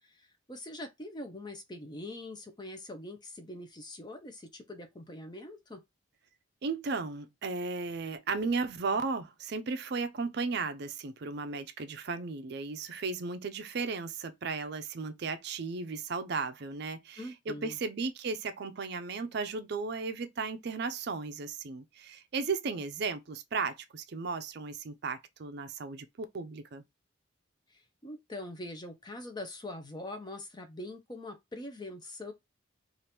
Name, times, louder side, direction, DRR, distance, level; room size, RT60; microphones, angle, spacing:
voice 1, 0.0-5.8 17.2-17.8 27.7-32.3, left 1 dB, 20° left, 0.6 m, -43 dB
voice 2, 6.6-26.8, right 4 dB, 55° right, 0.4 m, -35 dB
2.9 x 2.4 x 3.3 m
head